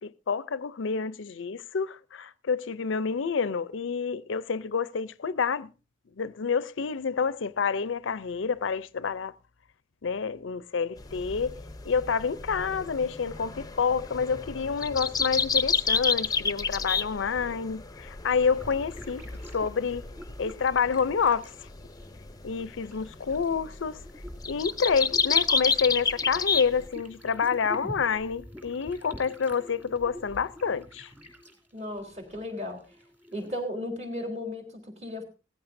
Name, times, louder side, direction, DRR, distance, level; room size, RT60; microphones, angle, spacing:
voice 1, 0.0-5.7 6.2-9.3 10.0-19.3 19.5-20.1 20.4-21.7 22.4-24.0 24.5-31.1, left 6 dB, 80° left, 0.5 m, -28 dB
sound 1, 11.0-26.9, left 5 dB, 20° left, 0.7 m, -30 dB
sound 2, 18.6-33.6, equal, 10° right, 2.7 m, -47 dB
voice 2, 31.7-33.0 33.3-35.2, left 1 dB, 35° right, 3.8 m, -35 dB
18.0 x 14.5 x 2.6 m
head